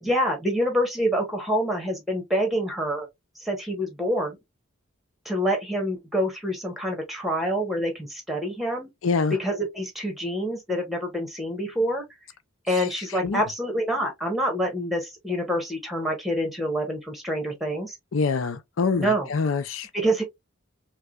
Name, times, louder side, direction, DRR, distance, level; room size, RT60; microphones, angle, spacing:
voice 1, 0.0-3.1 3.4-4.4 5.2-8.9 9.3-12.0 12.7-17.9 19.0-19.3 19.9-20.2, equal, ahead, 1.1 m, -26 dB
voice 2, 9.0-9.4 12.7-12.9 13.2-13.4 18.1-19.9, left 4 dB, 70° left, 0.5 m, -25 dB
4.6 x 2.2 x 2.3 m
head